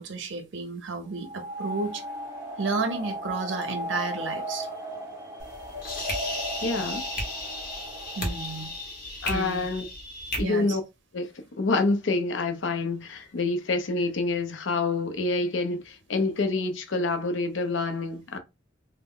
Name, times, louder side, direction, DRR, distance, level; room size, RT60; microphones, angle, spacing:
voice 1, 0.0-2.0 2.6-4.7 8.2-8.7 9.3-9.6 10.4-10.8, right 4 dB, 75° right, 0.5 m, -32 dB
sound 1, 1.1-8.8, equal, 15° right, 0.6 m, -36 dB
sound 2, 5.4-10.4, left 1 dB, 50° left, 0.9 m, -34 dB
voice 2, 6.6-7.0 9.2-9.9 10.3-10.8 11.1-11.3 11.6-18.4, left 3 dB, 85° left, 0.6 m, -27 dB
2.1 x 2.1 x 3.6 m
head